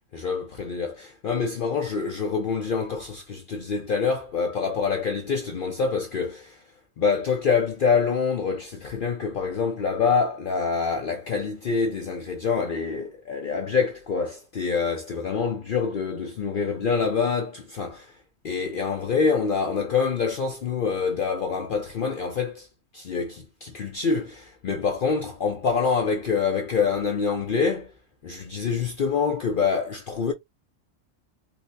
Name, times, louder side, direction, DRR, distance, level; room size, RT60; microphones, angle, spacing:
voice 1, 0.1-6.6 7.0-18.1 18.4-22.7 22.9-27.9 28.2-30.3, left 5 dB, 55° left, 0.6 m, -26 dB
3.9 x 2.1 x 2.5 m
omnidirectional pair, 1.3 m